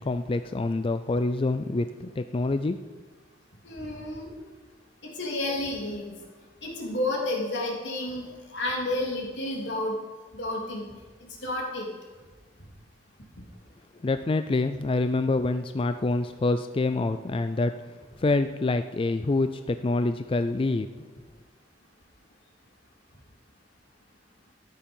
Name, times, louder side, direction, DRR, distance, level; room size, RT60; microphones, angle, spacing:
voice 1, 0.0-2.8 14.0-17.8 18.2-20.9, left 2 dB, 30° left, 10 dB, 0.4 m, -26 dB
voice 2, 3.6-4.4 5.1-6.1 6.6-9.9 10.3-10.9 11.4-11.9, left 1 dB, 80° left, -2 dB, 3.2 m, -31 dB
13.5 x 10.0 x 5.4 m, 1.4 s
head